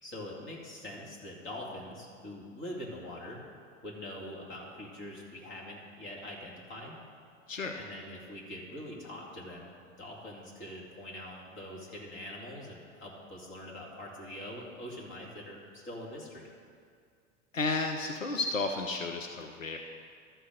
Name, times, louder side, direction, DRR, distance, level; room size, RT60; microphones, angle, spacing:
voice 1, 0.0-3.4 3.8-7.0 7.7-16.5, left 1 dB, 30° left, -3 dB, 2.7 m, -44 dB
voice 2, 7.5-7.8 17.5-19.8, left 3 dB, 90° left, 4 dB, 0.6 m, -32 dB
13.0 x 4.5 x 6.4 m, 2.3 s
figure-of-eight pair, 75°, 38 cm